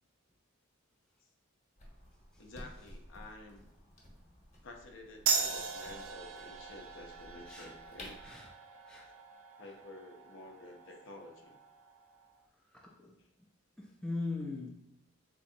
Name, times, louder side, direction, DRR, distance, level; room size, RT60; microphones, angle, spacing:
sound 1, 1.8-8.3, left 1 dB, 30° left, 0.9 m, -54 dB
voice 1, 2.4-3.7 4.6-8.2 9.6-11.6 13.2-13.3, left 2 dB, 60° left, 3 dB, 0.5 m, -51 dB
sound 2, 5.3-12.3, right 5 dB, 65° right, 0.4 m, -39 dB
voice 2, 12.7-13.2 13.8-14.7, left 3 dB, 5° left, -2 dB, 0.3 m, -40 dB
3.6 x 2.9 x 2.5 m, 0.81 s
head